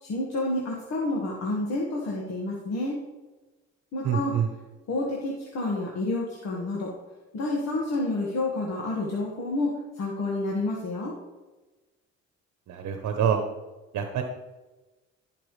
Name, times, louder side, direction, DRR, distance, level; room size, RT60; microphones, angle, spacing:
voice 1, 0.0-3.0 3.9-4.3 4.9-6.9 7.3-11.1, left 2 dB, 65° left, -3 dB, 1.8 m, -29 dB
voice 2, 4.0-4.5 12.7-13.4 13.9-14.2, right 8 dB, 70° right, 5 dB, 1.0 m, -26 dB
14.5 x 5.9 x 3.3 m, 1.2 s
cardioid pair, 95°, 29 cm